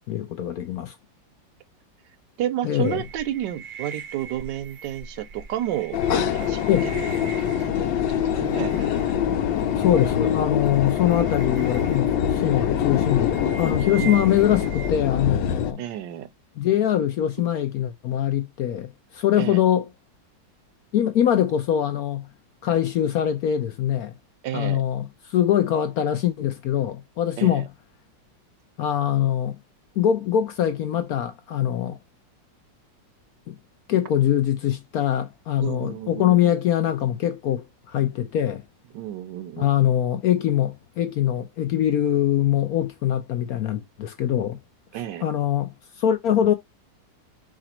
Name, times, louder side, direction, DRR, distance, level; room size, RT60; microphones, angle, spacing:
voice 1, 0.1-0.9 2.6-3.0 6.7-6.9 9.7-15.8 16.6-19.9 20.9-22.3 22.6-24.1 24.5-27.7 28.8-29.6 30.0-32.0 33.5-33.6 33.9-38.6 39.6-44.6 45.2-46.5, left 11 dB, 70° left, 0.9 m, -23 dB
voice 2, 2.4-7.2 7.4-9.2 10.9-11.3 14.0-14.3 15.8-16.3 19.4-19.6 24.4-24.8 27.4-27.6 35.6-36.5 38.9-39.7 44.9-45.3, right 12 dB, 75° right, 1.2 m, -32 dB
sound 1, 2.8-14.9, right 5 dB, 50° right, 0.7 m, -42 dB
sound 2, 5.9-15.7, left 9 dB, 90° left, 1.4 m, -24 dB
5.0 x 2.4 x 4.3 m
omnidirectional pair, 2.0 m